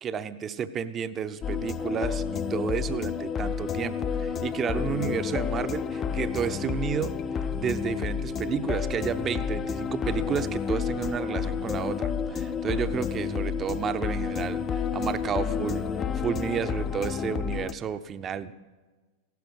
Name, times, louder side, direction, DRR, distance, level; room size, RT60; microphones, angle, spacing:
voice 1, 0.0-15.9 16.1-18.5, right 7 dB, 25° right, 12 dB, 0.7 m, -31 dB
sound 1, 1.4-17.7, left 6 dB, 25° left, 0.5 m, -30 dB
15.5 x 12.0 x 6.4 m, 1.3 s
figure-of-eight pair, 90°, 0 cm